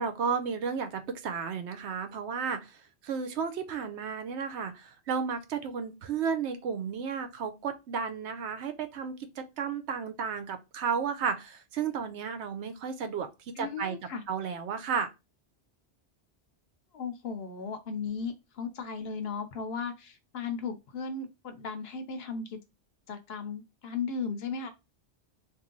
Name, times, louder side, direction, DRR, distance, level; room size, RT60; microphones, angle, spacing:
voice 1, 0.0-2.8 3.0-13.3 13.6-14.0 14.3-15.1, right 6 dB, 75° right, 0.9 m, -33 dB
voice 2, 13.6-14.2 16.9-22.6 23.1-24.7, left 5 dB, 60° left, 0.8 m, -36 dB
3.0 x 2.6 x 3.7 m
omnidirectional pair, 1.2 m